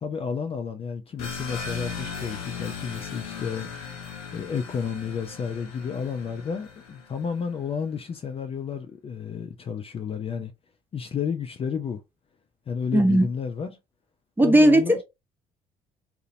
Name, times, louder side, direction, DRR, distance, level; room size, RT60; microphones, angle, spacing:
voice 1, 0.0-3.7 4.3-10.5 10.9-12.0 12.7-13.7 14.4-15.0, left 6 dB, 30° left, 0.4 m, -31 dB
sound 1, 1.2-7.4, left 6 dB, 80° left, 0.6 m, -38 dB
voice 2, 12.9-13.3 14.4-15.0, right 1 dB, 10° right, 0.7 m, -17 dB
2.8 x 2.0 x 2.6 m
hypercardioid pair, 50°, 18 cm